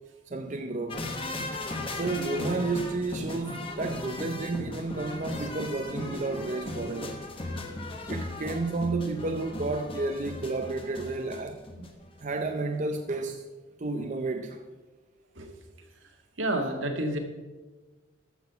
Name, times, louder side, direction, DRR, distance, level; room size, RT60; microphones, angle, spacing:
voice 1, 0.3-1.0 1.9-7.2 8.1-11.6 12.2-13.5 13.8-14.6, right 3 dB, 40° right, 0.5 m, -31 dB
sound 1, 0.9-12.1 12.4-12.5, left 2 dB, 30° left, 1.2 m, -37 dB
voice 2, 16.4-17.2, right 1 dB, 80° right, 1.7 m, -30 dB
14.0 x 6.3 x 5.6 m
head